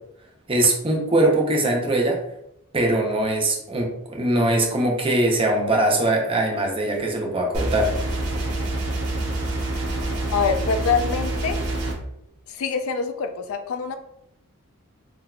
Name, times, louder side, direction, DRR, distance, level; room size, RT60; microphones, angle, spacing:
voice 1, 0.5-2.2 2.7-7.9, right 1 dB, 25° right, 0 dB, 0.6 m, -21 dB
sound 1, 7.5-11.9, right 2 dB, 80° right, 1.1 m, -26 dB
voice 2, 10.3-11.6 12.5-14.0, left 5 dB, 70° left, 7 dB, 0.4 m, -25 dB
3.8 x 2.8 x 2.3 m, 0.78 s
head